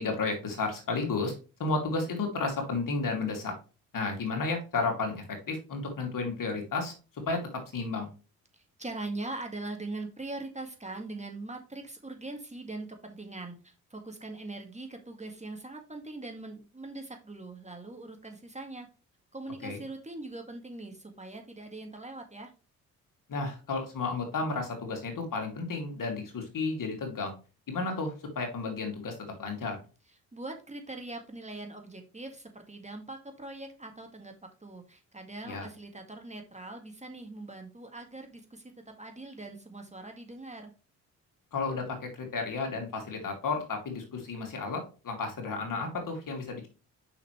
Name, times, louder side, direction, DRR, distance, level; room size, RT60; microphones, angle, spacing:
voice 1, 0.0-3.5 3.9-7.4 7.7-8.1 19.6-19.8 23.3-27.3 27.7-29.8 35.4-35.7 41.5-46.7, left 3 dB, 45° left, 3 dB, 2.8 m, -32 dB
voice 2, 8.5-18.9 19.3-22.5 30.3-38.7 39.0-40.7, right 2 dB, 15° right, 4 dB, 1.9 m, -41 dB
6.9 x 5.8 x 3.3 m, 0.33 s
hypercardioid pair, 45°, 43 cm